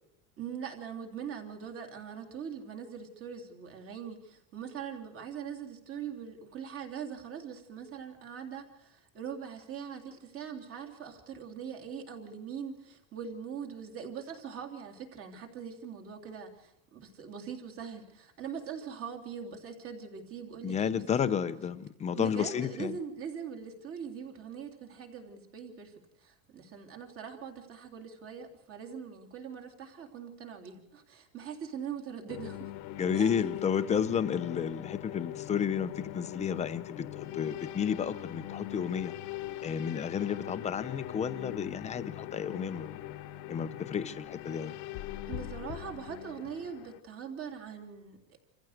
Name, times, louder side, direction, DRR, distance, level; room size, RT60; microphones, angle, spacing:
voice 1, 0.4-21.3 22.1-32.7 33.1-33.3 45.3-48.4, right 7 dB, 35° right, 3 dB, 3.3 m, -42 dB
voice 2, 20.6-23.0 33.0-39.1 39.6-43.0 43.5-44.8, left 7 dB, 15° left, 11 dB, 0.7 m, -32 dB
sound 1, 32.3-47.0, left 13 dB, 60° left, 1.2 m, -41 dB
28.0 x 15.0 x 6.6 m, 0.90 s
cardioid pair, 165°, 39 cm